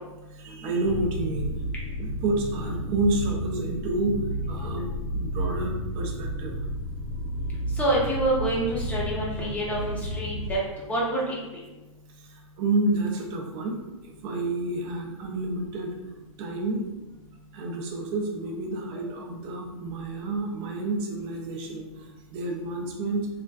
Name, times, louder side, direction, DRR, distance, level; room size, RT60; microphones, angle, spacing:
voice 1, 0.3-1.5 2.0-6.5 12.2-16.0 16.4-16.9 17.5-23.3, right 2 dB, 30° right, 1 dB, 0.4 m, -29 dB
sound 1, 0.8-10.6, right 1 dB, 80° right, 0.6 m, -32 dB
voice 2, 7.8-9.8 10.1-10.6 10.9-11.2, right 1 dB, 10° left, -6 dB, 0.6 m, -26 dB
2.4 x 2.3 x 2.3 m, 1.1 s
hypercardioid pair, 135°, 18 cm